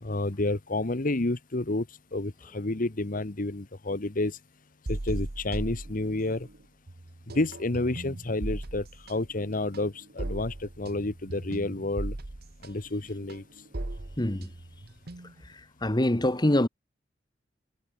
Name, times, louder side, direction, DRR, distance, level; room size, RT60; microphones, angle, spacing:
voice 1, 0.0-1.9 2.1-4.4 4.9-6.5 7.3-12.2 12.6-13.4, left 2 dB, 45° left, 1.2 m, -30 dB
sound 1, 4.9-6.6 6.9-15.5, right 1 dB, 55° right, 1.3 m, -38 dB
voice 2, 14.2-14.5 15.8-16.7, left 1 dB, 25° left, 1.5 m, -24 dB
head